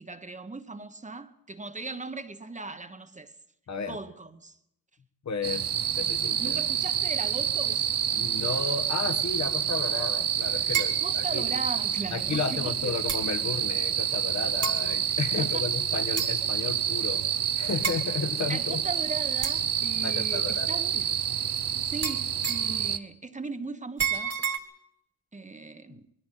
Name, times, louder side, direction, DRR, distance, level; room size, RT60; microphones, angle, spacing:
voice 1, 0.0-3.3 3.9-4.6 6.4-7.8 10.8-12.9 15.4-15.7 18.4-21.2 21.8-24.4 25.3-26.1, right 3 dB, 20° right, 1.1 m, -38 dB
voice 2, 3.7-4.0 5.2-6.6 8.1-11.5 12.1-18.8 20.0-20.8 25.9-26.0, left 5 dB, 55° left, 1.3 m, -33 dB
sound 1, 5.4-23.0, right 9 dB, 70° right, 0.9 m, -28 dB
sound 2, 10.7-11.0 12.1-12.2 13.1-13.3 14.6-14.9 16.2-16.5 17.8-18.0 19.4-19.7 22.0-22.7 24.0-24.6, right 7 dB, 45° right, 2.0 m, -30 dB
21.5 x 14.0 x 9.2 m
wide cardioid pair, 125°, 35 cm